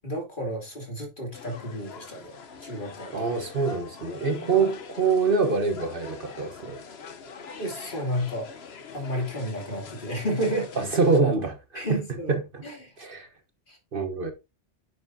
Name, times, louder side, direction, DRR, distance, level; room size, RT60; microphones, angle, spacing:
voice 1, 0.0-2.4 2.6-3.1 4.4-4.6 7.6-8.5 8.9-10.7 11.7-12.3 12.6-12.9 13.7-13.8, equal, 45° left, 3.0 m, -31 dB
sound 1, 1.3-11.2, left 5 dB, 65° left, 1.2 m, -43 dB
voice 2, 3.1-6.8 10.8-12.0 12.3-12.6 13.0-13.3 13.9-14.3, right 4 dB, 50° right, 1.3 m, -25 dB
9.8 x 7.0 x 2.7 m
omnidirectional pair, 1.2 m